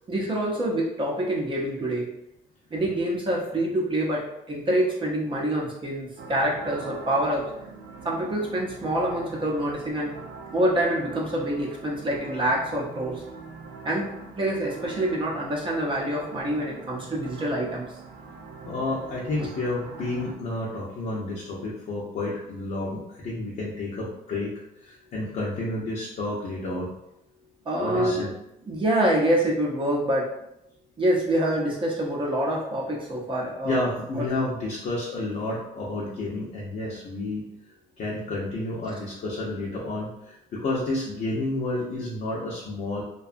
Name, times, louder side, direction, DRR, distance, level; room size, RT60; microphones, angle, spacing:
voice 1, 0.1-2.0 2.7-4.2 4.5-7.4 8.0-10.1 10.5-13.2 13.8-14.1 14.4-17.9 27.7-28.2 28.7-30.3 31.0-33.9 34.2-34.4, right 1 dB, 30° right, -4 dB, 0.6 m, -26 dB
sound 1, 6.2-20.3, right 4 dB, 80° right, 0.5 m, -42 dB
voice 2, 18.6-24.5 24.8-26.9 27.8-28.3 33.6-37.4 38.0-43.0, left 2 dB, 45° left, -5 dB, 0.6 m, -30 dB
2.6 x 2.2 x 2.5 m, 0.83 s
cardioid pair, 110°, 17 cm